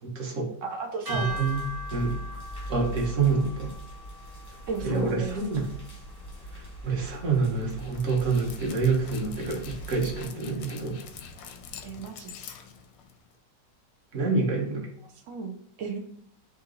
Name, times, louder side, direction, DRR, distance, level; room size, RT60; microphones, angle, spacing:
voice 1, 0.0-0.5 1.1-1.6 1.9-2.2 2.7-3.7 4.8-5.7 6.5-11.0 14.1-14.9, right 4 dB, 50° right, 0 dB, 1.2 m, -27 dB
voice 2, 0.6-1.4 4.7-5.4 11.8-12.3 15.3-16.0, right 4 dB, 75° right, 3 dB, 0.7 m, -34 dB
sound 1, 1.1-7.4, right 1 dB, 15° right, 0.8 m, -41 dB
sound 2, 1.2-10.3, right 1 dB, 20° left, 0.7 m, -42 dB
Dog, 7.6-13.4, left 6 dB, 85° left, 1.3 m, -45 dB
3.9 x 2.6 x 3.7 m, 0.72 s
omnidirectional pair, 1.9 m